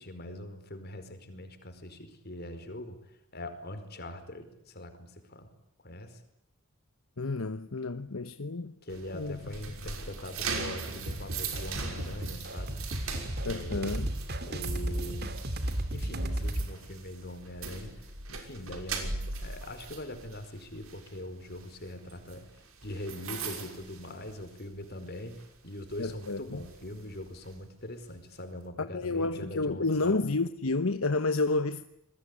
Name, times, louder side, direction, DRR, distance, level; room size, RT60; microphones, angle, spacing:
voice 1, 0.0-3.0 3.3-5.5 5.8-6.2 8.8-12.8 13.5-13.9 14.4-15.4 15.9-22.4 22.8-30.2, left 1 dB, 50° left, 5.0 m, -42 dB
voice 2, 7.2-8.7 9.1-9.5 13.4-14.1 26.0-26.6 28.8-31.8, left 3 dB, 75° left, 1.1 m, -30 dB
sound 1, 8.9-24.8 25.1-25.4 25.9-27.6, right 4 dB, 75° right, 5.9 m, -40 dB
sound 2, 11.1-16.7, right 1 dB, 50° right, 2.7 m, -34 dB
28.0 x 21.5 x 9.9 m
head